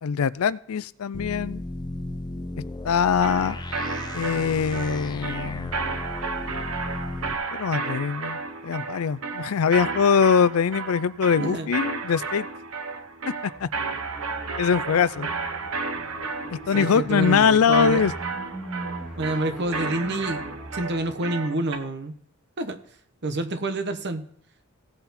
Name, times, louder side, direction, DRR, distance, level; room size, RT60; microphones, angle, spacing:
voice 1, 0.0-1.6 2.8-3.6 4.1-5.7 7.5-12.5 13.6-13.7 14.6-15.3 16.5-18.1, left 6 dB, 80° left, 18 dB, 0.4 m, -22 dB
sound 1, 1.1-7.3, left 1 dB, 20° left, 0.7 m, -35 dB
sound 2, 3.2-21.8, right 4 dB, 75° right, 1.1 m, -32 dB
sound 3, 13.5-21.2, right 1 dB, ahead, 2.2 m, -41 dB
voice 2, 16.6-18.0 19.2-20.4 20.7-22.1 22.6-22.8 23.2-24.2, right 2 dB, 55° right, 8 dB, 1.1 m, -28 dB
16.5 x 5.9 x 4.3 m, 0.65 s
head